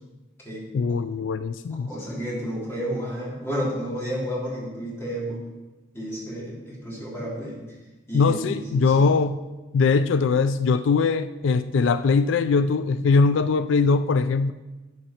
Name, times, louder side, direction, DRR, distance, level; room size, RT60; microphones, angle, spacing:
voice 1, 0.7-1.9 8.1-9.4 9.7-14.5, left 4 dB, 85° left, 12 dB, 0.4 m, -21 dB
voice 2, 1.7-5.4 5.9-7.6 8.1-8.9, equal, 15° left, -7 dB, 3.3 m, -31 dB
12.5 x 8.0 x 4.4 m, 1.1 s
head